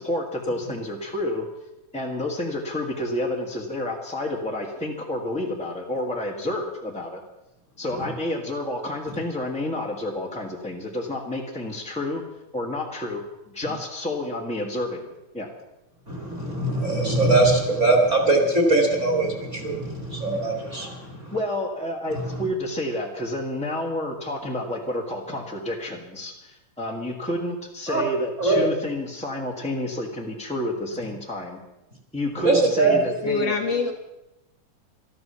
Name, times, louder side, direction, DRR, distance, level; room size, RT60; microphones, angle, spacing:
voice 1, 0.0-1.5 1.9-7.2 7.8-12.2 12.5-13.2 13.5-15.5 20.2-20.4 21.3-31.6 32.1-33.5, left 1 dB, 5° left, -2 dB, 0.8 m, -29 dB
voice 2, 16.1-21.3 27.9-28.0 28.4-28.7 32.4-33.0, right 2 dB, 25° right, 2 dB, 2.3 m, -21 dB
voice 3, 33.2-33.9, left 3 dB, 65° left, 4 dB, 1.8 m, -24 dB
13.5 x 13.0 x 6.9 m, 0.95 s
omnidirectional pair, 3.5 m